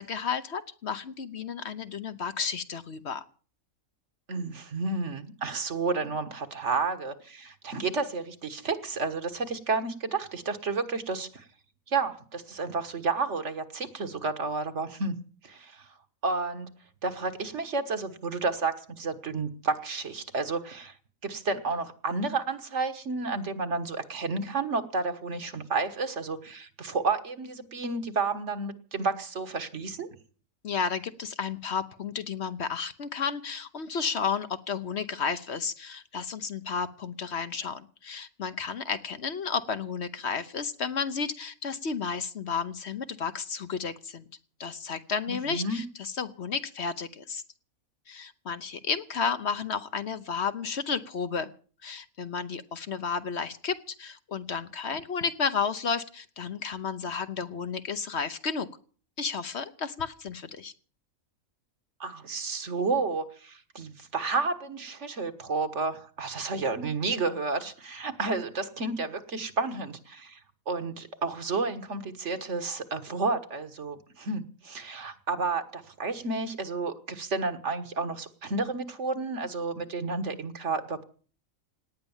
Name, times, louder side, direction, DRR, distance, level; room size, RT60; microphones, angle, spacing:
voice 1, 0.0-3.2 30.6-44.2 44.6-47.4 48.1-51.5 51.8-58.7 59.2-60.7, left 6 dB, 55° left, 11 dB, 1.1 m, -32 dB
voice 2, 4.3-11.5 11.9-15.2 15.4-15.9 16.2-16.7 17.0-21.0 21.2-30.1 45.3-45.8 62.0-70.4 70.7-81.0, right 3 dB, 60° right, 10 dB, 1.7 m, -31 dB
18.0 x 10.0 x 7.2 m, 0.42 s
omnidirectional pair, 1.4 m